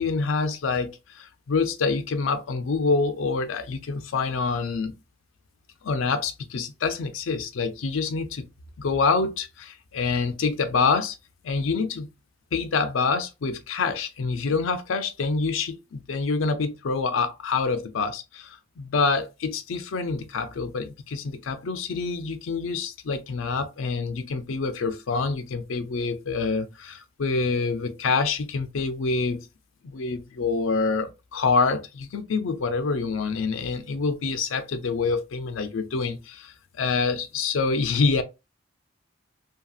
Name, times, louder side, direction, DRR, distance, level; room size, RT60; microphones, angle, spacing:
voice 1, 0.0-5.0 5.8-8.5 8.8-11.2 11.4-12.1 12.5-29.5 29.8-38.2, left 4 dB, 85° left, 0.5 m, -26 dB
2.8 x 2.7 x 2.4 m
head